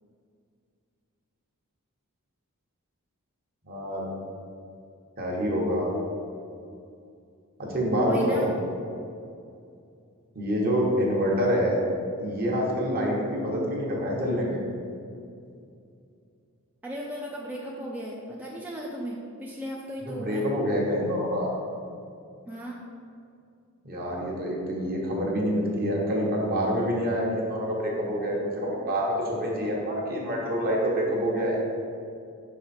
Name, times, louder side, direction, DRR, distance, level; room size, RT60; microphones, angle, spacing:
voice 1, 3.6-4.1 5.2-5.9 7.6-8.4 10.3-11.8 12.2-14.6 20.1-21.5 23.8-31.6, equal, 45° right, -2 dB, 1.2 m, -26 dB
voice 2, 8.0-8.5 16.8-20.5 22.5-22.8, equal, 5° right, -4 dB, 0.5 m, -36 dB
5.7 x 4.8 x 4.2 m, 2.5 s
head